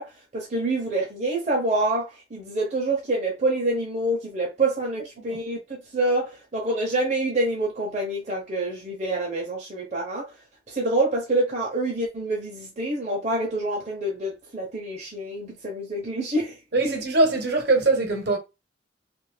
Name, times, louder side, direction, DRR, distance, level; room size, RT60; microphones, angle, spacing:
voice 1, 0.0-10.3 10.7-16.9, right 2 dB, 40° right, 0.7 m, -27 dB
voice 2, 16.7-18.4, right 2 dB, 60° right, 1.0 m, -22 dB
2.8 x 2.5 x 3.2 m
head